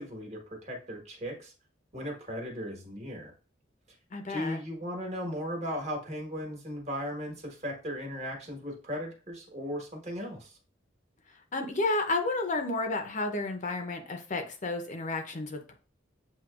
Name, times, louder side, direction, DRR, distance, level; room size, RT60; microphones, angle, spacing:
voice 1, 0.0-1.5 1.9-3.3 4.3-10.6, equal, 35° right, 1 dB, 1.3 m, -37 dB
voice 2, 4.1-4.6 11.3-15.7, left 2 dB, 40° left, 5 dB, 0.6 m, -31 dB
7.5 x 2.8 x 2.4 m, 0.36 s
head